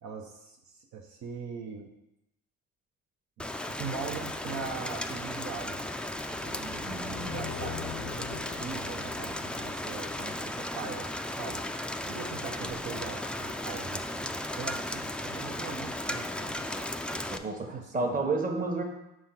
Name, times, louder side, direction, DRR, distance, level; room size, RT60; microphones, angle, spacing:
voice 1, 0.0-1.9 3.4-5.9 6.4-11.1 11.4-11.6 12.0-16.7 17.7-18.3, right 6 dB, 65° right, 2 dB, 0.8 m, -41 dB
Rain, 3.4-17.4, left 1 dB, 5° left, 0.3 m, -35 dB
sound 1, 6.1-10.6, left 9 dB, 90° left, 0.5 m, -43 dB
voice 2, 6.8-7.3 12.6-12.7 17.3-18.8, right 3 dB, 30° right, 2 dB, 1.1 m, -31 dB
6.0 x 3.6 x 5.7 m, 0.90 s
cardioid pair, 90°, 30 cm